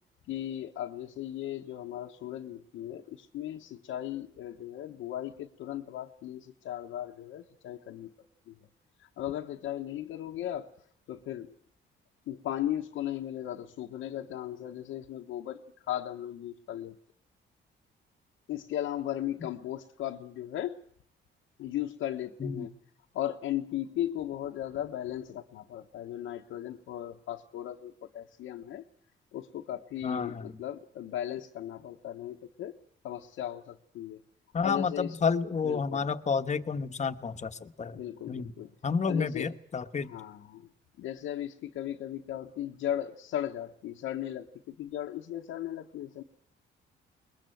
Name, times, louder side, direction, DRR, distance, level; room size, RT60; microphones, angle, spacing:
voice 1, 0.3-8.1 8.5-8.6 9.0-10.7 11.1-11.5 12.3-17.0 18.5-20.8 21.6-22.7 23.1-28.8 29.3-32.7 33.0-34.2 34.6-35.2 35.6-36.1 37.9-38.7 39.0-39.5 40.0-40.7 41.0-46.2, left 12 dB, 85° left, 1 dB, 1.0 m, -37 dB
voice 2, 30.0-30.6 34.5-38.0 38.3-38.5 38.8-40.1, left 5 dB, 35° left, 9 dB, 1.1 m, -30 dB
21.5 x 21.0 x 7.8 m, 0.64 s
cardioid pair, 90°, 20 cm